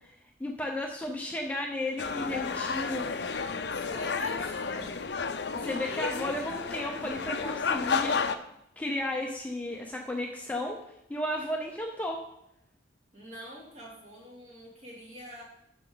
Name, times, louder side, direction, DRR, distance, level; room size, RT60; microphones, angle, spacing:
voice 1, 0.4-3.1 5.5-8.2 8.8-10.8 11.1-12.2, left 1 dB, 10° left, 1 dB, 0.7 m, -33 dB
sound 1, 2.0-8.4, left 5 dB, 70° left, 0.6 m, -31 dB
voice 2, 3.7-5.0 13.1-15.4, equal, 40° right, -3 dB, 3.0 m, -46 dB
12.0 x 7.0 x 4.0 m, 0.81 s
head